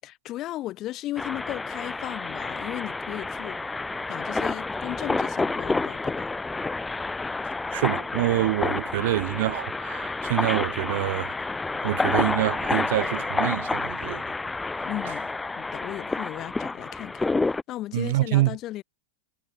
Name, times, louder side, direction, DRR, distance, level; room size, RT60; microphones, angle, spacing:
voice 1, 0.0-3.6 4.1-6.3 14.8-15.3 15.6-17.3 17.7-18.8, left 15 dB, 30° left, 6.7 m, -35 dB
sound 1, 1.2-17.6, left 3 dB, 10° left, 7.1 m, -29 dB
voice 2, 7.7-11.5 11.8-14.2 17.9-18.6, right 16 dB, 60° right, 5.4 m, -26 dB
supercardioid pair, 150°, 0 cm